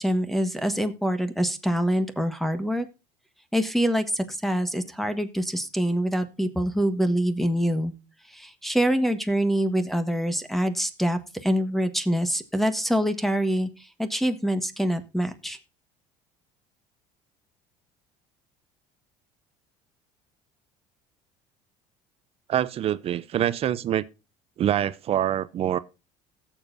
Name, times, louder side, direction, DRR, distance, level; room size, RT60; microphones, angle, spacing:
voice 1, 0.0-2.8 3.5-7.9 8.3-15.6, equal, ahead, 1.3 m, -25 dB
voice 2, 22.5-24.0 24.6-25.8, right 11 dB, 45° right, 0.6 m, -25 dB
18.0 x 7.2 x 2.6 m
supercardioid pair, 105°, 14 cm